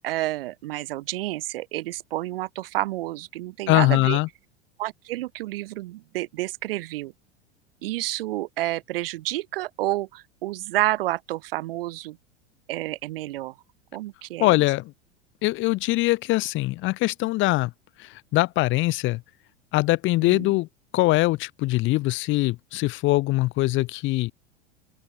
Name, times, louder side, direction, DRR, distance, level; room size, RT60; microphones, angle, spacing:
voice 1, 0.0-4.2 4.8-7.1 7.8-12.2 12.7-13.5 13.9-14.6 20.2-20.5, right 16 dB, 55° right, 0.5 m, -29 dB
voice 2, 3.7-4.3 14.4-14.9 15.4-17.7 18.0-19.2 19.7-20.7 20.9-24.3, left 19 dB, 35° left, 0.9 m, -22 dB
open air
figure-of-eight pair, 85°, 34 cm